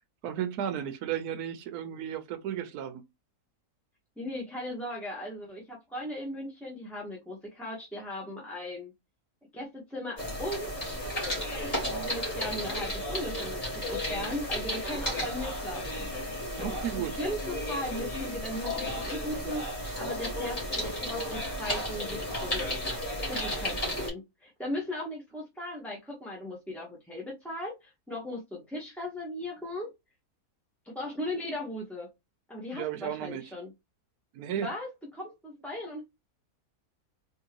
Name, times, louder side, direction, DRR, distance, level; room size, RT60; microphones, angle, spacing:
voice 1, 0.2-3.0 16.6-17.2 32.7-33.5 34.3-34.7, right 10 dB, 75° right, 1.1 m, -34 dB
voice 2, 4.2-8.9 9.5-10.8 11.5-16.1 16.6-22.7 23.3-29.9 30.8-32.1 32.5-33.7 34.6-36.0, left 1 dB, ahead, 0.8 m, -38 dB
sound 1, 10.2-24.1, equal, 25° left, 1.8 m, -33 dB
3.7 x 3.0 x 2.9 m
omnidirectional pair, 1.6 m